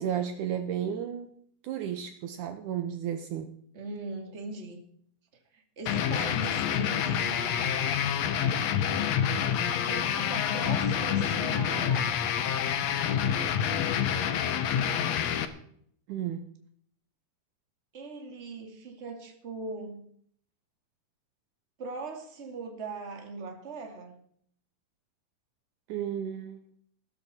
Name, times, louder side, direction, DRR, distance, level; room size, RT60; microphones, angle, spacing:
voice 1, 0.0-1.3 1.6-3.6 16.1-16.5 25.9-26.6, right 9 dB, 70° right, 8 dB, 2.1 m, -33 dB
voice 2, 3.7-4.8 5.5-7.9 9.8-12.3 14.7-15.5 17.9-20.1 21.8-24.2, right 3 dB, 25° right, 3 dB, 2.0 m, -40 dB
sound 1, 5.9-15.5, left 8 dB, 65° left, 1.8 m, -27 dB
16.5 x 13.0 x 4.3 m, 0.64 s
omnidirectional pair, 4.0 m